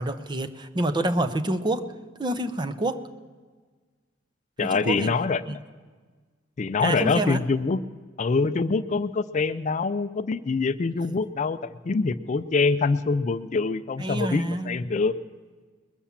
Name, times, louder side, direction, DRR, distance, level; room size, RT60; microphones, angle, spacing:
voice 1, 0.0-1.8 2.2-3.0 4.6-5.1 5.5-5.6 6.8-7.4 14.0-14.8, right 1 dB, 25° right, 9 dB, 0.6 m, -27 dB
voice 2, 4.6-5.6 6.6-7.8 8.2-15.1, left 4 dB, 40° left, 12 dB, 0.4 m, -25 dB
21.0 x 7.2 x 7.2 m, 1.4 s
head